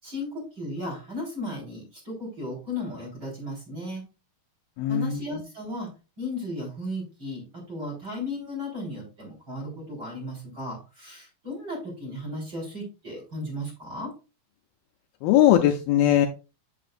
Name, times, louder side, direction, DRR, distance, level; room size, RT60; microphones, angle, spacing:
voice 1, 0.0-4.0 4.9-5.9 6.2-14.1, left 1 dB, 25° right, -3 dB, 4.2 m, -35 dB
voice 2, 4.8-5.2 15.2-16.3, left 11 dB, 80° left, 3 dB, 2.3 m, -19 dB
7.7 x 7.6 x 2.5 m, 0.31 s
omnidirectional pair, 4.7 m